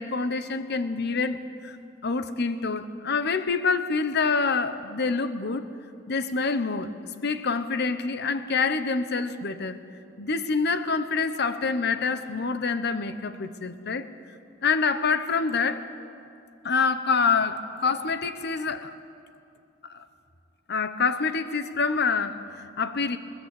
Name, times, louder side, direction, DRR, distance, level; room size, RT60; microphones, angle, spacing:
voice 1, 0.0-1.8 2.0-5.6 6.1-6.9 7.2-9.8 10.2-14.1 14.6-15.9 16.6-18.9 19.9-20.0 20.7-23.2, left 4 dB, 55° left, 11 dB, 1.1 m, -26 dB
20.5 x 20.5 x 8.5 m, 2.5 s
head